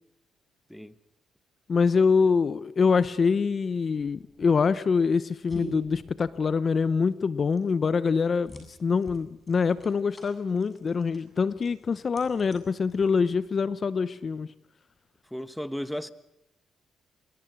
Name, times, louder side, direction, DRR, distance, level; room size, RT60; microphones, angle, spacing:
voice 1, 1.7-14.5, left 5 dB, 40° left, 0.8 m, -25 dB
sound 1, 4.2-13.5, left 1 dB, 20° left, 8.0 m, -45 dB
voice 2, 15.3-16.1, equal, 5° left, 1.3 m, -34 dB
25.5 x 22.5 x 6.2 m
cardioid pair, 90°, 0 cm